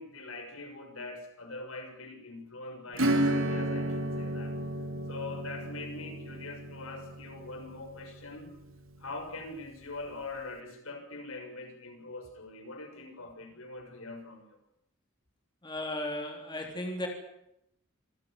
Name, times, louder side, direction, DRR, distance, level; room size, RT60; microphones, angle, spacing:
voice 1, 0.0-4.5 5.1-8.5 9.0-14.6, left 3 dB, 85° left, 4 dB, 6.7 m, -43 dB
Acoustic guitar / Strum, 2.9-9.2, right 1 dB, 75° right, 2.8 m, -33 dB
voice 2, 15.6-17.1, left 1 dB, 20° left, 2 dB, 3.6 m, -35 dB
27.0 x 16.5 x 9.2 m, 0.79 s
head